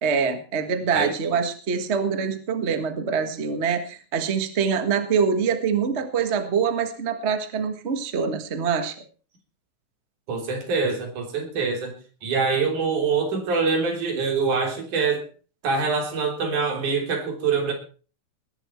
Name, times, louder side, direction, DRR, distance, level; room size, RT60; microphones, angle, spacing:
voice 1, 0.0-8.9, right 6 dB, 30° right, 8 dB, 1.3 m, -24 dB
voice 2, 10.3-11.9 12.2-15.2 15.6-17.7, right 5 dB, 80° right, 3 dB, 5.0 m, -24 dB
20.0 x 11.0 x 4.5 m, 0.39 s
omnidirectional pair, 3.4 m